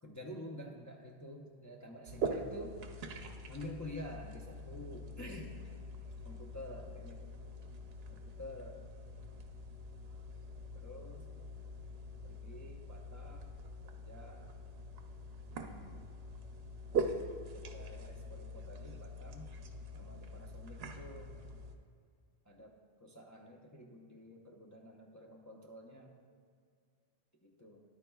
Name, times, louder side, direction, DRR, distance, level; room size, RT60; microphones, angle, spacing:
voice 1, 0.0-2.8 3.5-5.5 6.2-7.2 8.4-8.8 10.7-11.3 12.2-13.5 13.9-14.5 17.5-19.5 19.9-21.4 22.5-26.1 27.4-27.8, equal, 20° left, 0 dB, 0.6 m, -49 dB
sound 1, 2.1-21.8, right 2 dB, 70° right, 0.9 m, -43 dB
13.0 x 10.0 x 2.3 m, 2.2 s
omnidirectional pair, 1.1 m